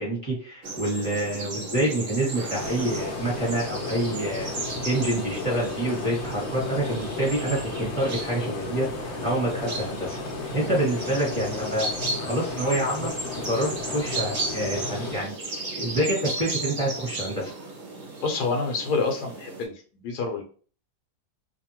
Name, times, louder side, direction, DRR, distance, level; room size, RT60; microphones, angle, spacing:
voice 1, 0.0-4.5 4.8-11.9 12.2-13.1 13.4-15.3 15.7-17.5, right 1 dB, 20° right, -5 dB, 1.3 m, -27 dB
sound 1, 0.6-19.6, right 2 dB, 50° right, 0.7 m, -35 dB
sound 2, 2.4-15.3, left 3 dB, 60° left, 0.8 m, -34 dB
voice 2, 18.2-20.4, left 4 dB, 75° left, 3 dB, 1.1 m, -28 dB
2.7 x 2.4 x 2.8 m, 0.41 s
omnidirectional pair, 1.8 m